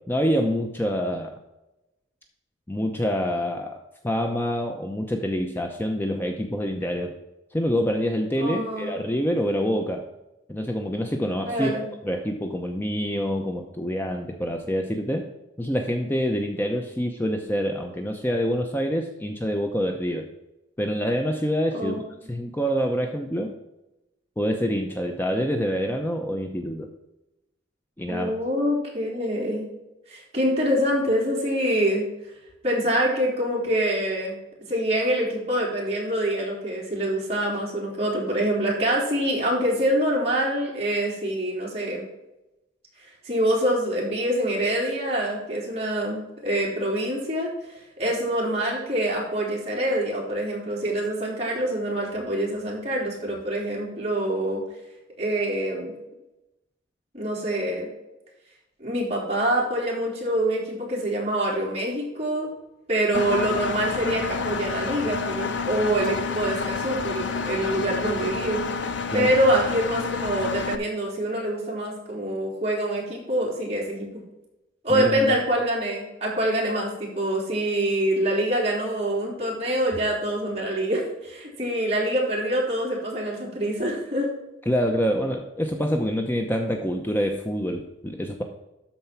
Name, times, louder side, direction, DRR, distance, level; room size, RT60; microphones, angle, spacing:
voice 1, 0.1-1.3 2.7-3.8 4.0-7.1 7.5-10.0 10.5-11.7 12.0-15.2 15.6-20.2 20.8-22.0 22.3-23.5 24.4-26.9 28.0-28.3 69.1-69.3 74.9-75.4 84.7-88.4, equal, 10° left, 3 dB, 0.7 m, -26 dB
voice 2, 8.4-9.0 11.4-11.8 21.8-22.0 28.1-29.7 30.1-32.1 32.6-34.4 34.7-42.0 43.2-54.6 55.2-55.9 57.1-57.9 58.8-62.5 62.9-68.6 69.1-74.1 74.8-84.3, right 1 dB, 35° right, -4 dB, 3.6 m, -25 dB
Engine, 63.1-70.8, left 4 dB, 70° left, 0.8 m, -29 dB
12.5 x 4.5 x 5.9 m, 0.95 s
head